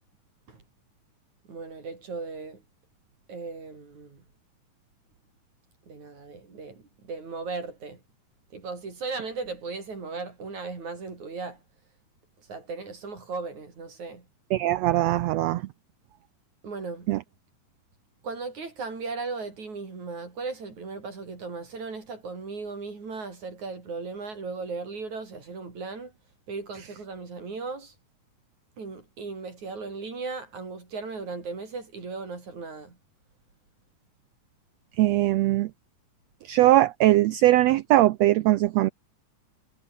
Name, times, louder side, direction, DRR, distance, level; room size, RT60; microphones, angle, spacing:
voice 1, 1.5-2.6 3.3-4.2 5.9-8.0 8.5-11.6 12.5-14.2 16.6-17.1 18.2-26.1 26.5-27.9 28.8-33.0, right 4 dB, 60° right, 6.5 m, -37 dB
voice 2, 14.5-15.6 17.1-17.2 35.0-35.7 36.4-38.9, right 15 dB, 90° right, 1.4 m, -21 dB
omnidirectional pair, 3.8 m